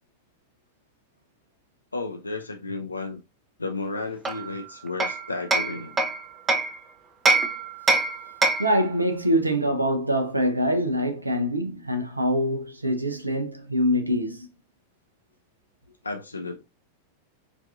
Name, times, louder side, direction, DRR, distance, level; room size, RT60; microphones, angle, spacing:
voice 1, 1.9-3.2 3.6-6.0 16.0-16.6, left 3 dB, 80° left, 0.3 m, -33 dB
Hammer, 4.2-6.8 7.3-8.8, right 3 dB, 20° right, 0.5 m, -24 dB
voice 2, 8.6-14.5, equal, 85° right, 0.6 m, -24 dB
4.7 x 2.6 x 2.4 m
figure-of-eight pair, 90°, 0 cm